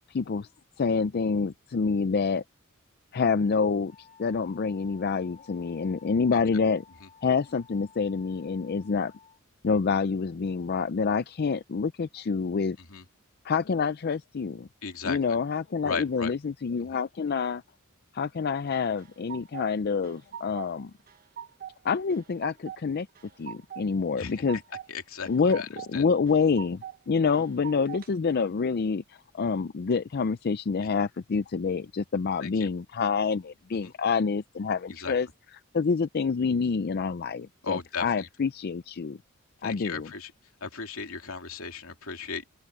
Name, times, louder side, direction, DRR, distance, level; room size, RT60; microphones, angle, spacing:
voice 1, 0.1-0.5 0.8-2.4 3.1-6.8 7.2-9.1 9.6-12.8 13.4-14.7 15.0-17.6 18.1-20.9 21.8-23.1 23.4-24.6 25.3-25.6 25.9-35.3 35.7-39.2 39.6-40.1, left 5 dB, 50° left, 0.4 m, -27 dB
Wind instrument woodwind instrument, 3.9-9.4, left 6 dB, 30° left, 6.4 m, -55 dB
voice 2, 14.8-15.2 15.8-16.3 16.8-17.0 24.2-24.4 24.9-26.1 32.4-32.7 33.8-33.9 34.9-35.1 37.6-38.3 39.6-40.3 40.6-42.5, left 5 dB, 75° left, 2.9 m, -36 dB
sound 1, 18.7-19.7 20.0-20.8 21.1-21.7 22.1-22.8 23.2-23.9 24.2-24.9 25.2-25.9 26.3-27.0 27.3-28.1, right 9 dB, 40° right, 1.0 m, -42 dB
open air
head